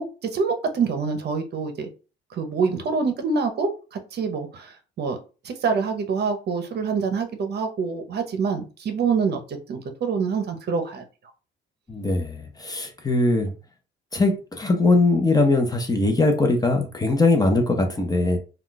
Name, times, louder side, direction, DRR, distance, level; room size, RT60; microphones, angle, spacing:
voice 1, 0.0-1.9 2.3-5.2 5.4-9.4 9.7-11.0, right 5 dB, 50° right, 0.7 m, -26 dB
voice 2, 11.9-13.5 14.1-18.4, left 2 dB, 20° left, 0.6 m, -21 dB
2.3 x 2.3 x 3.8 m
cardioid pair, 95°, 21 cm